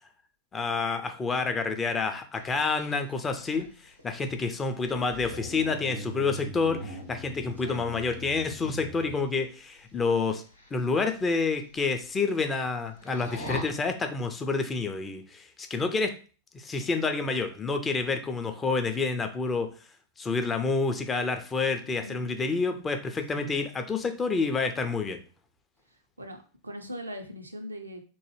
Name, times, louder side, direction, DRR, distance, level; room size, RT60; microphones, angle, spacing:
voice 1, 0.5-3.7 4.0-10.4 10.7-16.1 16.5-19.7 20.2-25.2, left 4 dB, 20° left, 6 dB, 0.4 m, -28 dB
sound 1, 2.4-9.3 10.3-10.7 11.1-11.2 11.7-11.8 12.0-12.7 13.0-13.6, equal, 85° left, 0.8 m, -41 dB
voice 2, 7.5-8.0 21.9-22.9 23.4-23.6 25.9-28.0, equal, 80° right, 5 dB, 0.5 m, -42 dB
3.0 x 2.1 x 3.0 m, 0.37 s
figure-of-eight pair, 90°, 0 cm